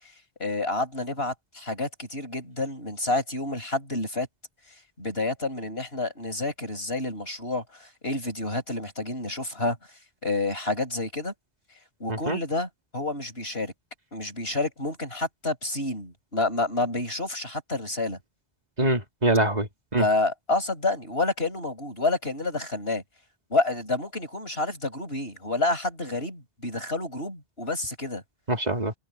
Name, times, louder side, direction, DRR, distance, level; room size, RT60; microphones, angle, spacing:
voice 1, 0.4-4.3 5.0-9.8 10.2-11.3 12.0-13.7 14.1-18.2 20.0-23.0 23.5-28.2, left 2 dB, 70° left, 6.6 m, -29 dB
voice 2, 12.1-12.4 18.8-20.0 28.5-28.9, right 1 dB, 40° right, 2.4 m, -24 dB
omnidirectional pair, 1.1 m